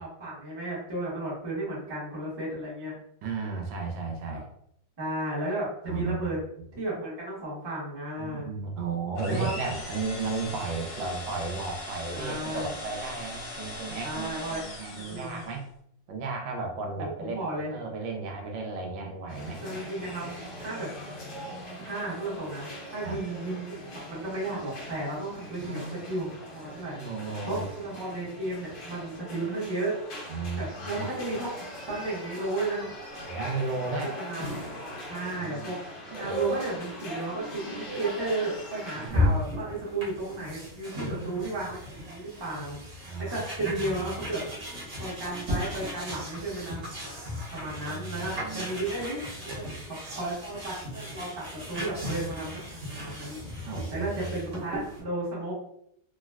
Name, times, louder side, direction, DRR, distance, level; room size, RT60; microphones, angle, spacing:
voice 1, 0.0-2.9 5.0-6.4 6.7-8.5 9.3-9.7 12.1-12.7 14.0-14.6 15.1-15.4 16.9-17.7 19.6-20.3 20.6-20.9 21.8-27.0 27.5-30.0 30.6-31.5 31.9-32.9 34.0-34.5 35.1-35.8 36.2-44.4 44.9-47.1 47.5-53.4 53.9-55.5, right 2 dB, 20° right, -7 dB, 0.6 m, -34 dB
voice 2, 3.2-4.4 5.8-6.3 8.2-15.6 16.1-19.6 23.0-23.2 25.6-26.0 27.0-27.6 30.3-31.1 33.2-34.1 35.4-35.7 36.1-36.4 38.9-39.2 41.0-41.5 43.0-43.4 47.6-48.6 53.6-54.4, right 4 dB, 85° right, 1 dB, 1.3 m, -34 dB
sound 1, 9.1-15.7, left 2 dB, 80° left, 1.4 m, -40 dB
sound 2, 19.3-39.1, equal, 60° left, 1.3 m, -40 dB
sound 3, 39.1-55.0, left 1 dB, 45° right, 1.1 m, -35 dB
3.8 x 2.0 x 2.3 m, 0.71 s
omnidirectional pair, 2.1 m